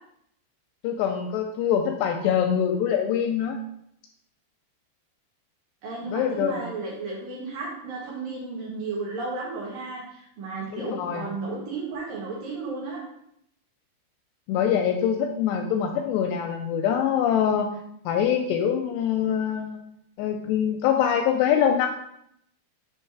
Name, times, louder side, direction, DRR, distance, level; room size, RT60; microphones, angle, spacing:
voice 1, 0.8-3.6 6.1-6.6 10.7-11.3 14.5-17.7 18.1-19.8 20.2-21.9, left 8 dB, 85° left, 4 dB, 2.4 m, -24 dB
voice 2, 5.8-13.0, right 3 dB, 65° right, -4 dB, 2.4 m, -33 dB
7.2 x 3.0 x 5.8 m, 0.74 s
omnidirectional pair, 5.1 m